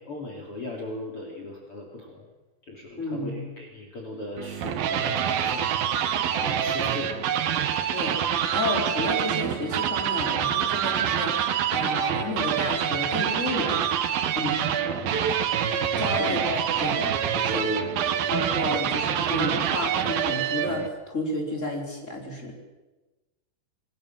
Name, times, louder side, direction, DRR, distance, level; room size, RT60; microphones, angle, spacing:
voice 1, 0.0-2.2 2.7-5.7 6.4-7.1 7.5-7.7 14.9-15.1 16.2-16.4 17.5-18.4, left 2 dB, 40° left, 0 dB, 3.6 m, -37 dB
voice 2, 3.0-3.4 7.9-13.8 14.3-14.6 16.0-17.6 18.3-22.5, left 1 dB, 20° left, 1 dB, 4.7 m, -31 dB
sound 1, 4.4-20.9, right 9 dB, 70° right, 3.1 m, -26 dB
27.5 x 19.5 x 7.6 m, 1.1 s
omnidirectional pair, 4.5 m